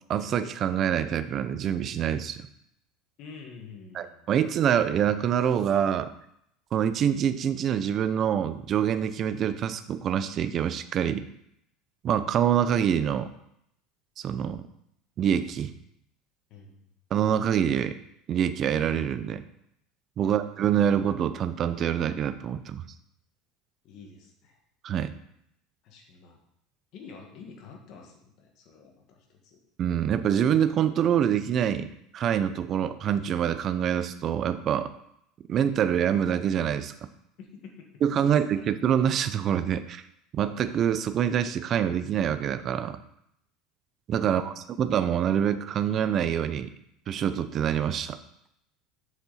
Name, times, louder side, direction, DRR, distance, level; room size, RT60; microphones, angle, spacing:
voice 1, 0.1-2.5 3.9-6.1 6.7-11.3 12.0-13.3 14.2-14.6 15.2-15.7 17.1-18.0 18.3-19.4 20.2-22.8 24.8-25.1 29.8-34.9 35.5-36.9 38.0-40.0 40.3-43.0 44.1-46.7 47.1-48.2, right 9 dB, 35° right, 12 dB, 0.5 m, -25 dB
voice 2, 3.2-4.3 16.5-16.8 20.2-20.4 23.8-24.6 25.8-26.4 26.9-29.6 37.4-37.9 38.2-38.6 44.2-44.6, left 5 dB, 50° left, 2 dB, 1.7 m, -48 dB
7.2 x 6.7 x 4.2 m, 0.76 s
cardioid pair, 155°, 0 cm